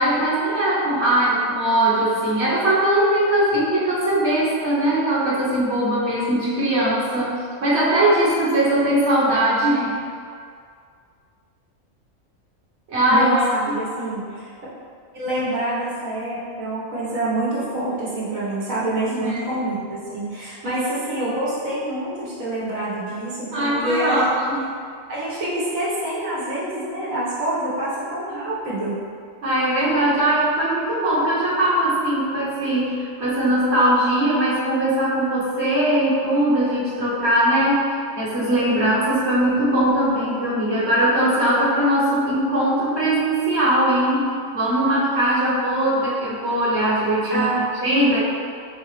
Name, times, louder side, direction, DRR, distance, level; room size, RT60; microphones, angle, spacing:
voice 1, 0.0-9.9 12.9-13.3 13.7-13.8 19.1-19.4 23.5-24.7 29.4-47.5 47.8-48.2, right 1 dB, 55° right, -8 dB, 1.3 m, -20 dB
voice 2, 13.1-14.5 15.1-24.2 25.1-29.0 47.3-47.7, right 1 dB, 90° right, -8 dB, 1.6 m, -26 dB
3.9 x 3.8 x 3.2 m, 2.2 s
omnidirectional pair, 1.4 m